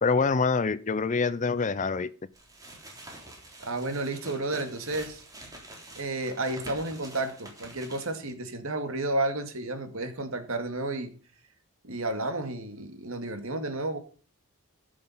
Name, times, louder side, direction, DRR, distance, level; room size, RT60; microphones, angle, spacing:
voice 1, 0.0-2.1, left 4 dB, 35° left, 0.5 m, -25 dB
sound 1, 2.3-8.3, right 1 dB, 15° right, 3.4 m, -47 dB
voice 2, 3.6-5.2 6.0-11.1 11.8-14.0, right 2 dB, 65° right, 2.1 m, -32 dB
14.0 x 7.6 x 5.6 m
head